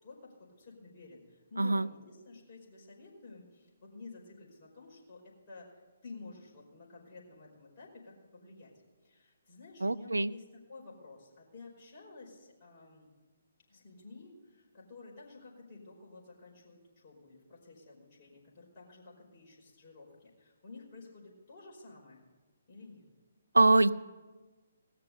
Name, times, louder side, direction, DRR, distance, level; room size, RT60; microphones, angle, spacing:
voice 1, 0.0-8.7 9.0-10.4 10.7-13.1 13.7-22.3 22.7-23.1, left 3 dB, 35° left, -3 dB, 5.0 m, -52 dB
voice 2, 1.6-1.9 9.8-10.3 23.5-23.9, right 2 dB, 85° right, 15 dB, 0.4 m, -24 dB
18.5 x 6.7 x 8.1 m, 1.3 s
figure-of-eight pair, 140°, 0 cm